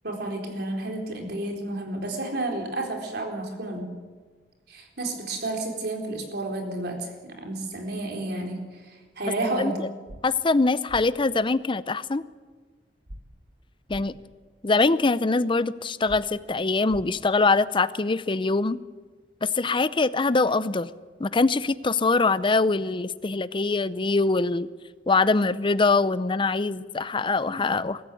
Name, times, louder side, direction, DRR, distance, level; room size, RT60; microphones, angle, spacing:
voice 1, 0.0-3.9 4.7-9.8, right 2 dB, 65° right, 2 dB, 4.1 m, -31 dB
sound 1, 10.1-10.2 10.9-11.0 13.1-13.2 13.9-14.0 16.1-16.2 16.9-17.0, equal, 85° right, 2.1 m, -41 dB
voice 2, 10.2-12.2 13.9-14.2 14.6-18.8 19.4-20.9 21.2-24.7 25.1-28.0, left 3 dB, 30° left, 16 dB, 0.6 m, -23 dB
23.0 x 13.5 x 9.2 m, 1.4 s
head